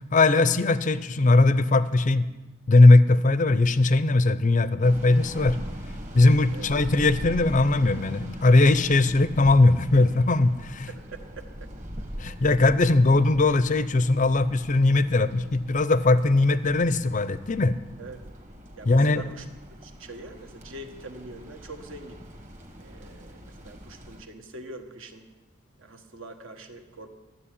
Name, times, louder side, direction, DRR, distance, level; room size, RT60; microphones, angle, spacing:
voice 1, 0.0-2.3 2.7-5.6 6.1-10.9 12.2-17.7 18.9-19.2, left 2 dB, 35° left, 14 dB, 0.5 m, -20 dB
sound 1, 4.8-24.2, equal, 35° right, 1.7 m, -41 dB
voice 2, 10.9-11.7 18.0-18.2 18.7-19.5 19.8-22.2 22.8-25.2 25.8-27.1, right 2 dB, 65° right, 5 dB, 1.4 m, -43 dB
13.0 x 7.7 x 9.9 m, 1.2 s
head